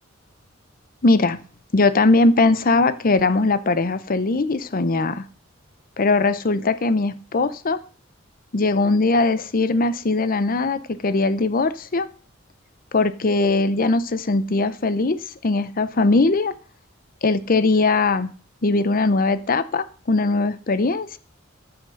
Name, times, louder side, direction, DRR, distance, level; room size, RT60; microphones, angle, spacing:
voice 1, 1.0-1.4 1.7-5.2 6.0-7.8 8.5-12.1 12.9-16.5 17.2-18.3 18.6-21.2, left 3 dB, 45° left, 0.7 m, -20 dB
9.6 x 5.9 x 6.4 m
head